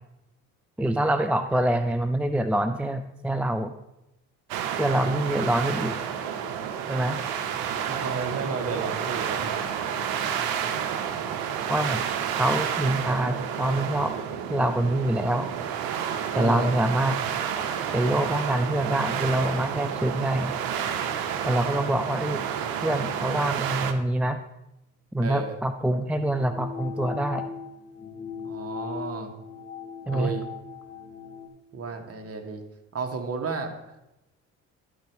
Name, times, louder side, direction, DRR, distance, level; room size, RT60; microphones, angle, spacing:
voice 1, 0.8-3.7 4.8-6.0 6.9-7.2 11.7-12.0 12.4-14.1 14.5-15.5 16.3-17.2 17.9-20.6 21.4-22.4 22.8-24.4 25.1-27.5 30.1-30.3, right 1 dB, 5° right, 9 dB, 0.4 m, -25 dB
sound 1, 4.5-23.9, right 8 dB, 75° right, 0.9 m, -30 dB
voice 2, 7.9-9.7 16.3-16.7 25.2-25.5 28.4-29.3 30.1-30.5 31.7-32.6 32.9-33.7, right 4 dB, 40° right, 5 dB, 1.6 m, -32 dB
sound 2, 26.2-31.5, left 6 dB, 25° left, 1.9 m, -38 dB
11.5 x 4.6 x 4.7 m, 0.89 s
supercardioid pair, 65°, 36 cm